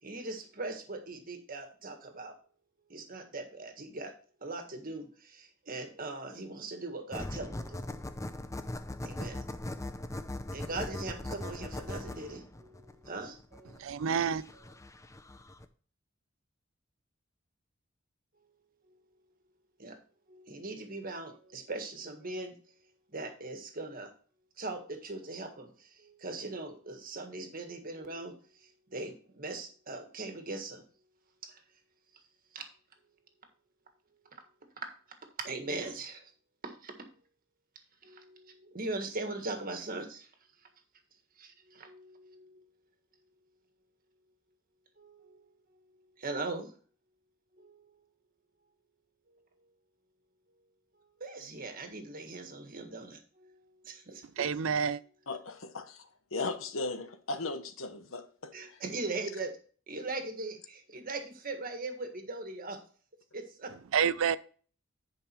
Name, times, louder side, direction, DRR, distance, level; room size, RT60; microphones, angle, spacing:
voice 1, 0.0-2.4 2.9-4.1 4.4-7.8 9.0-9.5 10.5-13.9 19.8-20.0 20.3-22.6 23.1-24.1 24.6-30.8 31.4-31.6 32.1-32.2 32.5-32.7 34.3-34.4 35.4-36.3 36.6-36.9 38.0-40.3 41.4-42.6 45.0-45.4 46.2-46.7 47.6-47.9 51.2-54.5 58.5-59.5 59.9-62.8 63.3-63.7, right 2 dB, 45° right, 1.6 m, -40 dB
sound 1, 7.1-15.6, left 1 dB, 15° left, 0.6 m, -40 dB
voice 2, 13.8-14.4 54.4-55.0 63.9-64.4, right 7 dB, 90° right, 0.4 m, -28 dB
voice 3, 55.3-58.8, left 3 dB, 90° left, 1.1 m, -37 dB
10.0 x 5.2 x 4.4 m
head